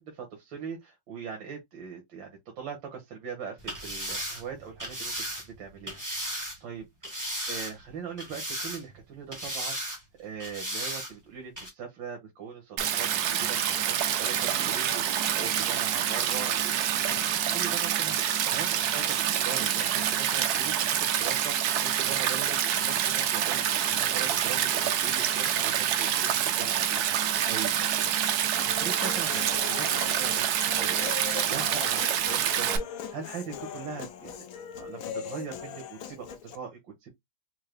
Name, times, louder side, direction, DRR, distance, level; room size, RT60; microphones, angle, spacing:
voice 1, 0.0-6.8 7.4-13.7 14.2-27.7 28.6-37.1, right 6 dB, 85° right, 1.7 m, -41 dB
sound 1, 3.6-6.6 7.0-7.9 8.2-9.0 9.3-10.0 10.4-11.1 11.6-11.7, equal, 15° right, 1.0 m, -35 dB
Stream, 12.8-32.8, right 10 dB, 70° right, 1.0 m, -27 dB
Human voice, 28.6-36.6, left 8 dB, 70° left, 0.8 m, -40 dB
4.6 x 2.1 x 3.2 m
omnidirectional pair, 2.0 m